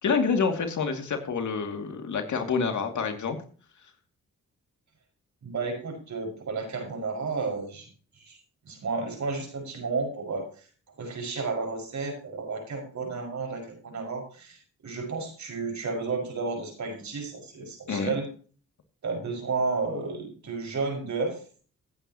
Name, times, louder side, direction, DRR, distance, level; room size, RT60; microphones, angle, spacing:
voice 1, 0.0-3.4 17.9-18.1, left 5 dB, 65° left, 5 dB, 2.4 m, -27 dB
voice 2, 5.4-7.9 8.2-8.4 8.7-10.4 11.0-18.3 19.0-21.4, right 4 dB, 60° right, 2 dB, 5.6 m, -32 dB
15.5 x 9.1 x 2.9 m, 0.41 s
cardioid pair, 65°, 32 cm